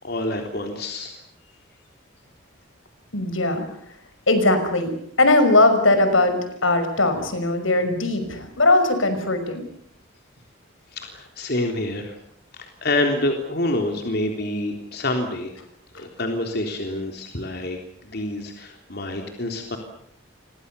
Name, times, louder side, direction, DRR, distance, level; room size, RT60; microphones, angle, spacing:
voice 1, 0.0-1.2 10.9-12.2 12.5-15.5 15.9-17.8 18.0-19.8, left 1 dB, 55° left, 3 dB, 3.6 m, -27 dB
voice 2, 3.1-3.7 4.3-4.9 5.2-9.6, left 2 dB, 80° left, 9 dB, 5.8 m, -19 dB
29.5 x 25.0 x 7.0 m, 0.70 s
head